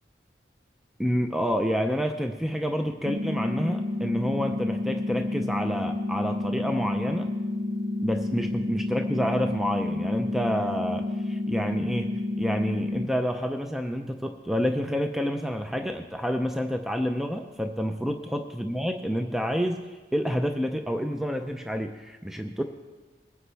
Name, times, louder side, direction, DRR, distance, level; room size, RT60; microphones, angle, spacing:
voice 1, 1.0-7.3 8.0-12.1 12.4-19.8 20.1-22.6, equal, ahead, 5 dB, 0.5 m, -28 dB
sound 1, 3.1-13.1, left 2 dB, 85° right, 1.2 m, -30 dB
22.0 x 9.6 x 3.4 m, 1.3 s
head